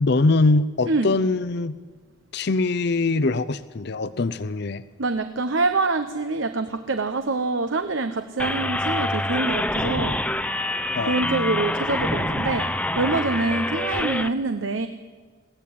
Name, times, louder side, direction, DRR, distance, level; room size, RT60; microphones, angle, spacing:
voice 1, 0.0-1.8 2.3-4.8 10.9-11.2, left 3 dB, 55° left, 13 dB, 0.6 m, -22 dB
voice 2, 5.0-10.2 11.0-12.7 13.0-14.9, right 3 dB, 75° right, 9 dB, 1.0 m, -25 dB
sound 1, 8.4-14.3, left 1 dB, 5° left, 0.7 m, -26 dB
21.5 x 17.0 x 8.8 m, 1.5 s
head